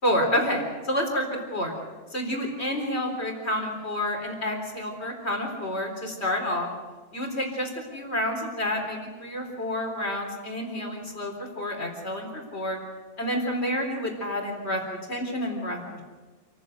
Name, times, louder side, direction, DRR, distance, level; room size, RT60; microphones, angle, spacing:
voice 1, 0.0-1.7 2.1-6.7 7.1-12.8 13.2-16.0, left 1 dB, 65° left, 2 dB, 4.3 m, -29 dB
28.0 x 14.5 x 8.1 m, 1.4 s
omnidirectional pair, 1.2 m